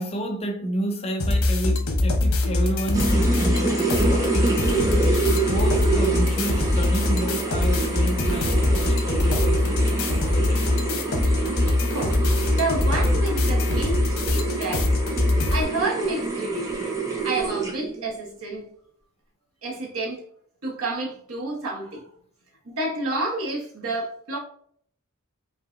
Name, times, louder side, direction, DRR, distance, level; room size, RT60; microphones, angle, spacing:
voice 1, 0.0-4.3 5.1-10.8, right 1 dB, 30° left, 0.6 m, -31 dB
sound 1, 1.2-15.6, left 2 dB, 90° left, 0.9 m, -22 dB
sound 2, 2.9-18.0, right 3 dB, 15° right, 0.9 m, -27 dB
voice 2, 11.8-16.7 17.2-18.7 19.6-20.2 20.6-22.1 22.6-24.4, right 2 dB, 75° right, 1.3 m, -30 dB
5.4 x 2.6 x 2.6 m
head